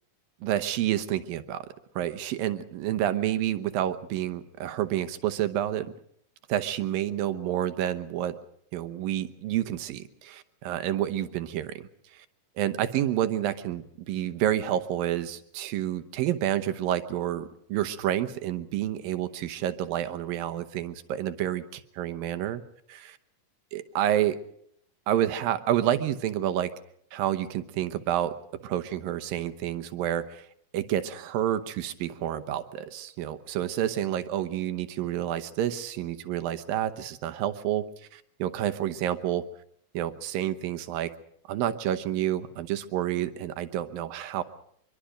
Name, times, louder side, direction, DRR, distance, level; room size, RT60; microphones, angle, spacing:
voice 1, 0.4-1.7 2.0-5.9 6.5-8.4 8.7-11.7 12.1-12.3 12.6-22.6 22.9-23.2 23.7-24.4 25.1-26.7 27.1-28.3 28.6-30.5 30.7-37.8 38.1-39.4 39.9-41.1 41.5-44.4, right 11 dB, 80° right, 10 dB, 2.8 m, -29 dB
24.5 x 23.5 x 5.1 m, 0.69 s
omnidirectional pair, 4.1 m